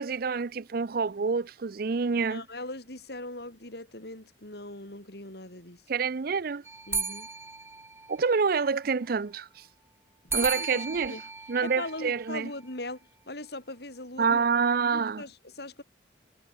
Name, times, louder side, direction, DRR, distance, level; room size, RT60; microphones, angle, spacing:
voice 1, 0.0-2.4 5.9-6.6 8.1-9.5 10.3-11.1 11.5-12.5 14.2-15.2, right 5 dB, 55° right, 0.5 m, -27 dB
voice 2, 2.3-5.8 6.9-7.3 10.2-11.2 11.6-14.4 14.9-15.8, left 2 dB, 60° left, 7.1 m, -40 dB
sound 1, 6.6-8.6 10.3-12.7, right 4 dB, 15° right, 2.3 m, -35 dB
head